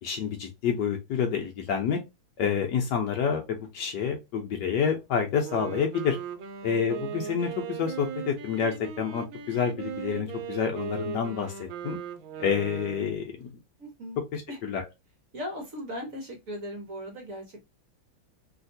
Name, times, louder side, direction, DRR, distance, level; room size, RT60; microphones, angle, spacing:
voice 1, 0.0-2.0 2.4-6.2 6.6-12.0 12.4-13.5 14.3-14.8, left 7 dB, 70° left, 1.1 m, -28 dB
Wind instrument woodwind instrument, 5.3-13.3, right 7 dB, 80° right, 1.5 m, -38 dB
voice 2, 13.8-14.2 14.5-14.6 15.3-17.6, equal, 50° right, 1.1 m, -38 dB
3.2 x 2.8 x 2.6 m
omnidirectional pair, 2.2 m